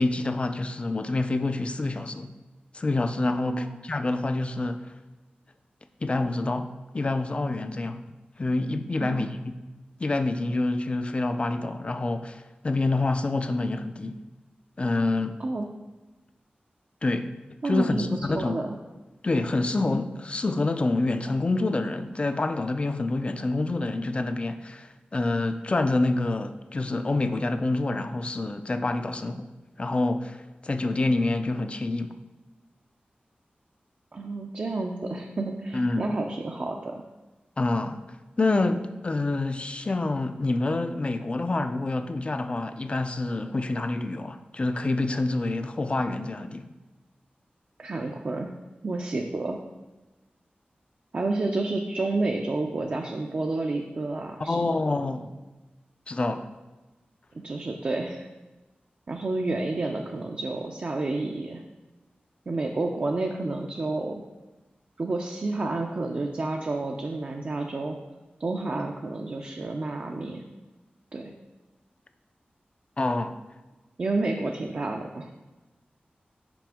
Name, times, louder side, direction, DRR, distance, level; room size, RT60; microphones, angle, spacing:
voice 1, 0.0-2.3 2.7-5.0 6.0-8.0 8.4-9.6 10.0-14.2 14.8-15.4 17.0-17.3 17.6-18.6 19.2-29.5 29.8-32.1 35.7-36.1 37.6-38.0 38.4-46.7 54.5-55.3 56.1-56.5 73.0-73.4, left 2 dB, 35° left, 9 dB, 0.3 m, -27 dB
voice 2, 3.4-3.8 9.0-9.3 15.4-15.7 17.6-18.8 34.1-37.0 47.8-48.5 48.8-49.6 51.1-54.7 57.4-58.3 59.1-61.6 62.5-64.2 65.0-67.9 68.4-70.4 71.1-71.3 74.0-75.3, right 2 dB, 50° right, 1 dB, 0.4 m, -30 dB
5.9 x 5.0 x 3.5 m, 1.2 s
wide cardioid pair, 110°, 3 cm